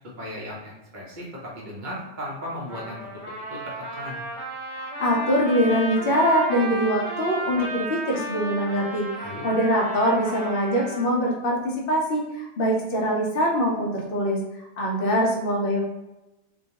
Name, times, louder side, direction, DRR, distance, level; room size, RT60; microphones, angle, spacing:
voice 1, 0.2-3.0 3.5-4.3 9.2-9.5, equal, 50° right, -5 dB, 0.7 m, -36 dB
Trumpet, 2.7-11.1, equal, 25° right, 0.9 m, -33 dB
voice 2, 4.7-15.8, equal, 60° left, -1 dB, 0.7 m, -23 dB
2.3 x 2.2 x 2.8 m, 1.0 s
omnidirectional pair, 1.2 m